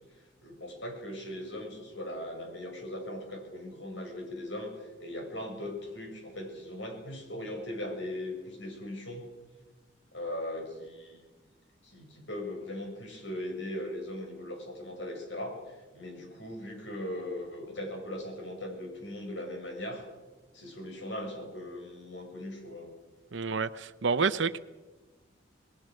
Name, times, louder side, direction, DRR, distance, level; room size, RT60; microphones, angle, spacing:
voice 1, 0.4-9.3 10.1-11.2 11.8-20.0 20.5-22.9, left 1 dB, 70° left, 2 dB, 6.9 m, -39 dB
voice 2, 23.3-24.6, right 5 dB, 70° right, 10 dB, 0.7 m, -29 dB
27.5 x 20.0 x 6.5 m, 1.3 s
head